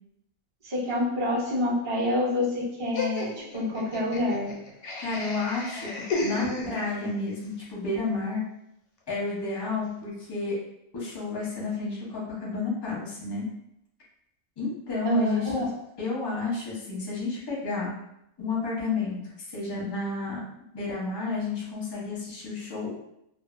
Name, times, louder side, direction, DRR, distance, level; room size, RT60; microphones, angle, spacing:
voice 1, 0.6-4.5 15.0-15.7, left 1 dB, 45° right, -6 dB, 0.3 m, -27 dB
Laughter, 2.9-7.2, left 2 dB, 80° left, 1.0 m, -33 dB
voice 2, 5.0-5.9 6.2-8.4 9.1-10.6 10.9-13.5 14.6-15.6 16.0-17.9 18.4-20.4 20.7-22.9, left 3 dB, 30° left, -5 dB, 0.4 m, -31 dB
2.5 x 2.1 x 2.4 m, 0.81 s
omnidirectional pair, 1.5 m